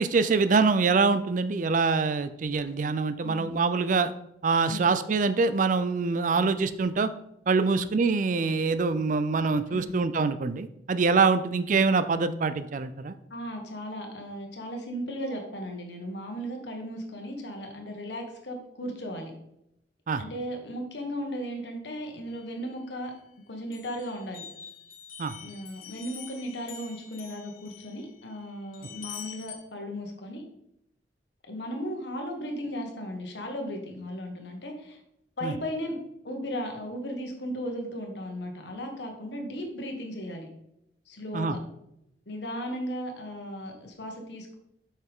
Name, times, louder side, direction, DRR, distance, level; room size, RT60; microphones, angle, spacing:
voice 1, 0.0-4.1 4.4-7.1 7.5-13.1 20.1-20.2 25.2-25.3 35.4-35.5 41.3-41.6, right 4 dB, 45° right, 12 dB, 0.4 m, -24 dB
voice 2, 3.2-3.5 4.7-4.8 7.6-7.9 9.7-10.0 13.3-19.3 20.2-23.1 23.5-24.4 25.4-30.4 31.5-35.0 35.4-36.0 36.2-40.5 41.1-41.6 42.3-44.6, equal, 70° left, 3 dB, 1.5 m, -36 dB
sound 1, 22.3-23.3 23.7-29.6, left 8 dB, 50° left, 1.5 m, -46 dB
7.7 x 5.6 x 3.6 m, 0.80 s
head